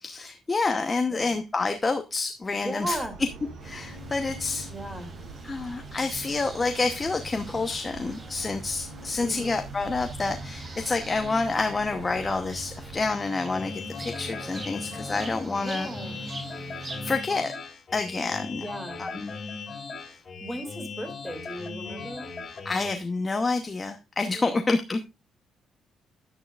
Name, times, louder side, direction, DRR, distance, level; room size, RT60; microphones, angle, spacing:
voice 1, 0.0-3.0 3.6-4.7 5.4-15.9 17.0-17.5 17.9-18.7 19.0-19.3 22.6-25.0, left 3 dB, 20° left, 7 dB, 0.9 m, -28 dB
voice 2, 2.6-3.2 4.7-5.1 9.2-9.5 15.6-16.2 18.6-19.1 20.1-22.3 24.3-24.7, right 1 dB, 5° right, 6 dB, 2.5 m, -36 dB
sound 1, 2.9-13.1, right 4 dB, 70° right, 4.6 m, -44 dB
sound 2, 3.6-17.2, right 1 dB, 35° right, 3.1 m, -42 dB
sound 3, 13.5-23.0, left 4 dB, 40° left, 2.4 m, -39 dB
11.0 x 9.9 x 2.4 m, 0.25 s
cardioid pair, 130°, 0 cm